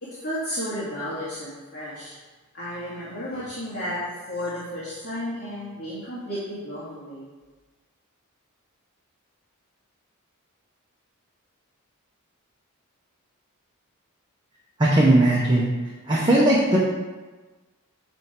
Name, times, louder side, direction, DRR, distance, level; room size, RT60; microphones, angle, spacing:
voice 1, 0.0-2.1 2.5-4.0 4.3-7.3, equal, 50° left, -10 dB, 2.2 m, -33 dB
voice 2, 14.8-15.7 16.1-16.8, right 1 dB, 20° right, -6 dB, 1.0 m, -18 dB
8.9 x 3.6 x 4.5 m, 1.2 s
head